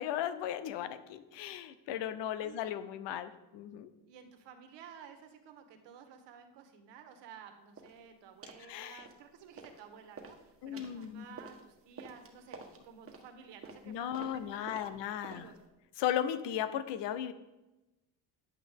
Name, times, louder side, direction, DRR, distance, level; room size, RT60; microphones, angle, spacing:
voice 1, 0.0-3.9 8.7-9.0 10.6-11.3 13.9-15.5 16.0-17.3, left 10 dB, 75° left, 13 dB, 0.8 m, -36 dB
voice 2, 4.1-15.6, right 7 dB, 75° right, 6 dB, 1.5 m, -53 dB
sound 1, 7.8-8.0 8.4-8.7 9.0-9.8 10.1-15.7, right 4 dB, 30° right, 1.4 m, -51 dB
10.5 x 8.4 x 3.6 m, 1.0 s
cardioid pair, 100°, 43 cm